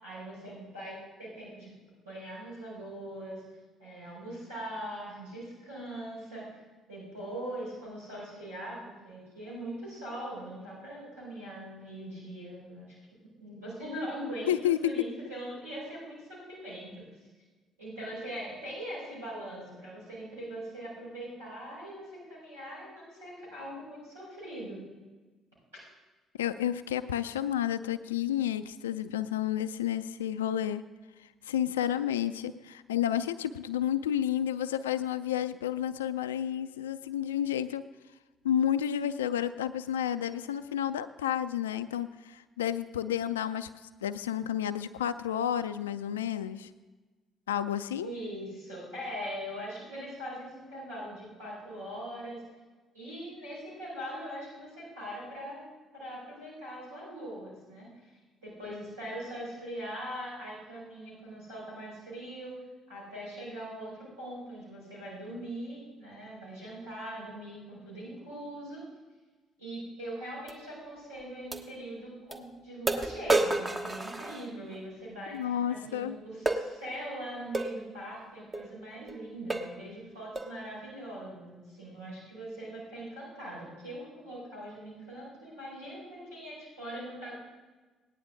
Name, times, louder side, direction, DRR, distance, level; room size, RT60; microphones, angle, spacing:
voice 1, 0.0-1.7 2.0-3.4 3.8-6.4 6.9-12.9 13.2-17.0 17.8-24.8 48.0-52.4 52.9-55.7 55.9-58.1 58.4-62.6 62.9-68.8 69.6-87.3, right 1 dB, 85° right, -10 dB, 5.0 m, -41 dB
voice 2, 14.5-14.9 26.4-30.8 31.4-37.8 38.4-43.7 44.0-46.7 47.5-48.1 75.3-76.2, left 10 dB, 80° left, 11 dB, 0.3 m, -31 dB
sound 1, 70.5-70.6 71.5-71.6 72.3-72.4 72.9-74.8 76.5-76.7 77.5-77.7 78.5-78.7 79.1-79.2 79.5-79.8 80.4-80.6, right 2 dB, 25° right, 1.2 m, -30 dB
17.5 x 10.5 x 3.8 m, 1.3 s
figure-of-eight pair, 45°, 0 cm